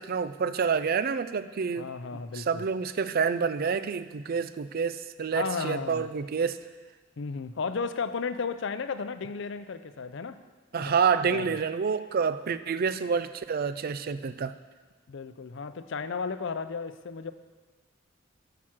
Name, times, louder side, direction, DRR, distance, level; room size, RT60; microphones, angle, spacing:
voice 1, 0.0-1.9 2.3-6.6 10.7-14.5, right 6 dB, 50° right, 13 dB, 0.4 m, -28 dB
voice 2, 1.8-2.6 5.3-6.1 7.2-10.4 10.8-10.9 11.3-11.5 15.1-17.3, left 5 dB, 65° left, 11 dB, 0.5 m, -34 dB
11.0 x 5.9 x 5.9 m, 1.4 s
head